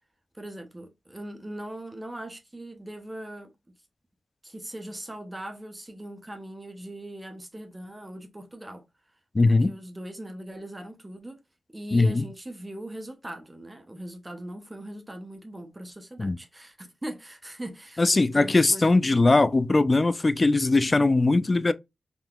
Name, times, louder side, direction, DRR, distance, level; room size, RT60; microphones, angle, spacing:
voice 1, 0.3-3.5 4.4-8.8 9.4-11.4 11.7-19.4, right 1 dB, 15° right, 0.6 m, -40 dB
voice 2, 9.3-9.7 11.9-12.2 16.2-16.4 18.0-21.7, left 3 dB, 30° left, 0.3 m, -20 dB
3.6 x 2.7 x 2.3 m
wide cardioid pair, 90°, 0 cm